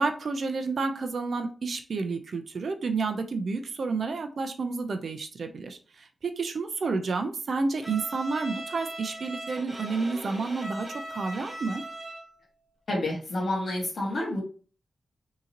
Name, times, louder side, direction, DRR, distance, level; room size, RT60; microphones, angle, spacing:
voice 1, 0.0-11.8, right 4 dB, 60° right, 7 dB, 0.5 m, -30 dB
Bowed string instrument, 7.8-12.4, right 1 dB, 20° right, 1.0 m, -39 dB
voice 2, 12.9-14.4, left 1 dB, 55° left, -2 dB, 1.4 m, -29 dB
3.8 x 2.8 x 2.8 m, 0.39 s
wide cardioid pair, 145°, 0 cm